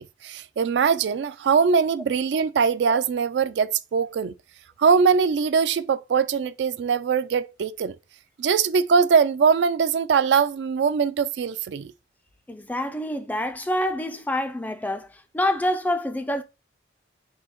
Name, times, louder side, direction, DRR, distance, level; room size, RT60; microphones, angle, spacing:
voice 1, 0.0-4.3 4.8-7.9 8.4-11.9, right 6 dB, 70° right, 0.3 m, -22 dB
voice 2, 12.5-16.4, left 1 dB, 10° left, 0.3 m, -27 dB
3.8 x 2.7 x 4.1 m
head